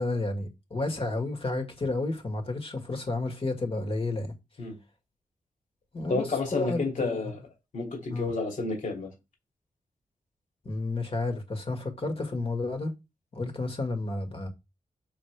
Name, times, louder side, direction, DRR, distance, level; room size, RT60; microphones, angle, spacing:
voice 1, 0.0-4.3 5.9-7.3 8.1-8.3 10.6-12.9 13.3-14.5, left 2 dB, 40° left, 1.9 m, -31 dB
voice 2, 6.1-7.4 7.7-9.1, left 3 dB, 65° left, 2.7 m, -30 dB
7.3 x 6.4 x 3.4 m
wide cardioid pair, 135°, 14 cm